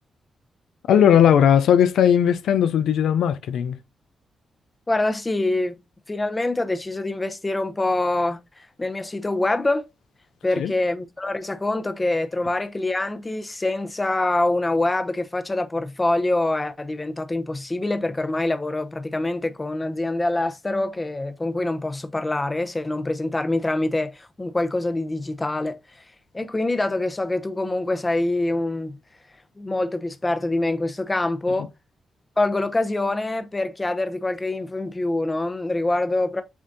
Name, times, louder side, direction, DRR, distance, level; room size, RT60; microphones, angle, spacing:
voice 1, 0.9-3.8 10.6-10.7, left 9 dB, 85° left, 0.3 m, -17 dB
voice 2, 4.9-5.8 6.1-9.9 10.4-26.0 26.3-29.0 29.6-31.7 32.4-36.4, left 2 dB, 20° left, 0.7 m, -25 dB
7.0 x 2.5 x 2.6 m
cardioid pair, 70°, 0 cm